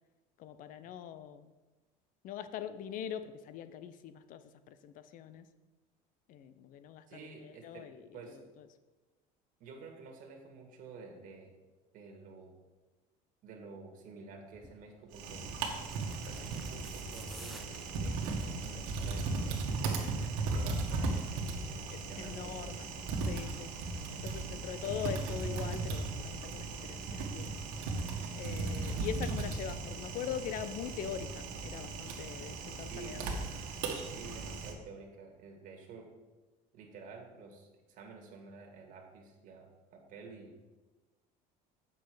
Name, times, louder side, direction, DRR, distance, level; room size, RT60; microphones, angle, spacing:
voice 1, 0.4-1.5 2.2-5.5 6.3-8.7 21.9-22.9 23.3-23.7 24.1-27.6 28.3-33.2, left 9 dB, 55° left, 12 dB, 0.6 m, -42 dB
voice 2, 7.1-8.4 9.6-11.5 11.9-12.6 13.4-15.4 16.1-17.7 18.0-20.2 20.5-22.9 32.9-33.2 34.1-36.1 36.7-40.6, right 4 dB, 55° right, 2 dB, 1.9 m, -50 dB
sound 1, 14.5-14.8 15.6-18.5 18.9-19.2 19.5-19.6, equal, ahead, 0.6 m, -53 dB
Typing, 15.1-34.7, right 3 dB, 90° right, 1.6 m, -37 dB
8.2 x 6.2 x 5.0 m, 1.2 s
cardioid pair, 135°, 17 cm